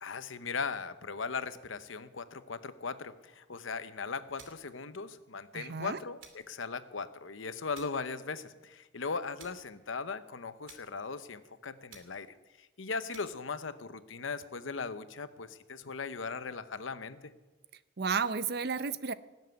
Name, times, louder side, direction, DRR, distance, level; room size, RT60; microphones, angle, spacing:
voice 1, 0.0-17.3, left 4 dB, 85° left, 13 dB, 0.9 m, -39 dB
sound 1, 4.4-4.8 6.2-6.6 7.7-8.1 9.4-9.8 10.7-11.0 11.9-12.3 13.1-13.5, right 6 dB, 80° right, 2.6 m, -55 dB
voice 2, 5.5-6.0 18.0-19.1, right 5 dB, 55° right, 15 dB, 0.6 m, -32 dB
18.5 x 7.5 x 9.3 m, 1.2 s
head